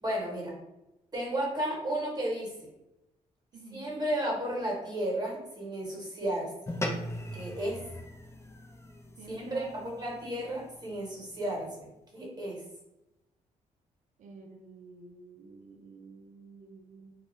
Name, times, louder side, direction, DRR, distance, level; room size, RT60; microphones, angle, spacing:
voice 1, 0.0-0.6 1.1-2.7 3.7-6.5 7.3-7.8 9.3-11.9 12.1-12.6, right 1 dB, 25° right, -2 dB, 1.1 m, -33 dB
voice 2, 3.5-3.9 9.2-9.9 14.2-17.1, right 4 dB, 60° right, 3 dB, 0.5 m, -49 dB
sound 1, 6.7-11.3, left 1 dB, 20° left, 0.5 m, -40 dB
2.3 x 2.0 x 3.1 m, 0.93 s
cardioid pair, 70°, 15 cm